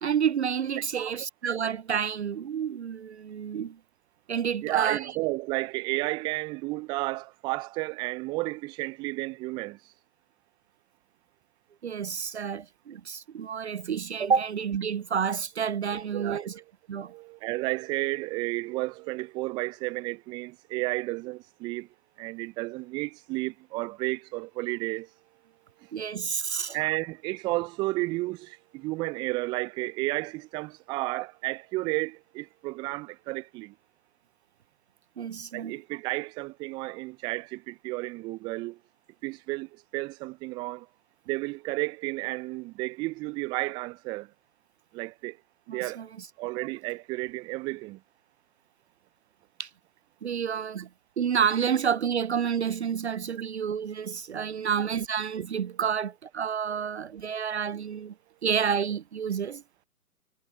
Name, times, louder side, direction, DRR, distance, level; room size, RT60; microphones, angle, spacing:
voice 1, 0.0-3.8 4.3-5.1 11.8-16.5 16.9-17.1 25.9-26.8 35.2-35.8 45.7-46.3 49.6-49.7 50.2-50.9 51.2-58.1 58.4-59.6, right 7 dB, 50° right, 0.7 m, -29 dB
voice 2, 4.6-9.8 15.9-16.6 17.0-21.9 22.2-25.1 25.8-25.9 26.7-33.7 35.5-38.8 39.2-40.9 41.3-44.3 44.9-45.4 45.7-46.0 46.4-48.0 54.3-54.6, right 22 dB, 10° right, 0.8 m, -32 dB
figure-of-eight pair, 130°, 45 cm